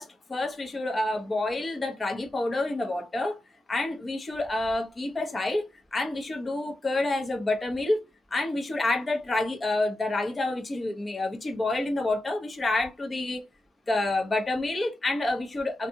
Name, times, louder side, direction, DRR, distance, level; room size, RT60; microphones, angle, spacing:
voice 1, 0.0-3.4 3.7-8.0 8.3-13.4 13.9-15.9, left 2 dB, 30° left, 0.8 m, -28 dB
2.6 x 2.4 x 2.7 m
cardioid pair, 90°, 0 cm